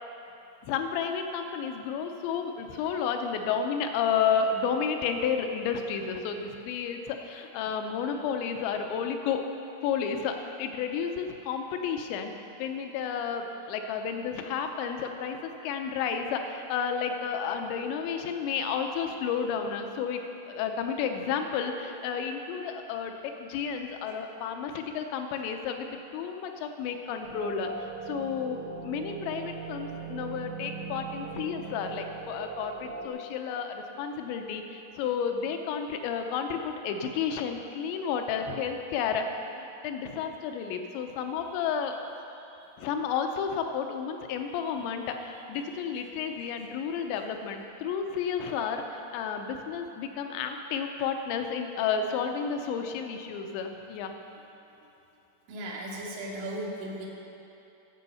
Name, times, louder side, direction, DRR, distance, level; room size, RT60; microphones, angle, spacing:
voice 1, 0.6-9.5 9.8-12.3 12.6-25.9 26.1-27.7 28.1-39.2 39.6-41.9 42.8-54.1, left 6 dB, 80° left, 5 dB, 3.0 m, -31 dB
sound 1, 27.2-33.1, right 5 dB, 65° right, 2.1 m, -40 dB
voice 2, 55.5-57.1, right 1 dB, 85° right, -4 dB, 4.1 m, -36 dB
14.0 x 7.3 x 5.6 m, 3.0 s
omnidirectional pair, 5.2 m